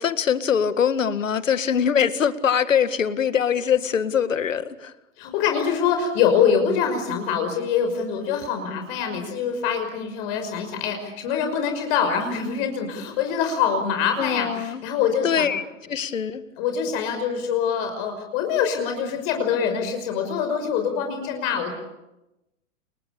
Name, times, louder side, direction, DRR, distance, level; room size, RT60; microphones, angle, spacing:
voice 1, 0.0-4.9 14.2-14.8 15.2-15.6 15.9-16.4, left 8 dB, 80° left, 12 dB, 2.0 m, -23 dB
voice 2, 5.2-15.5 16.6-21.7, left 7 dB, 50° left, 5 dB, 5.8 m, -24 dB
29.5 x 22.5 x 8.5 m, 0.96 s
hypercardioid pair, 105°, 38 cm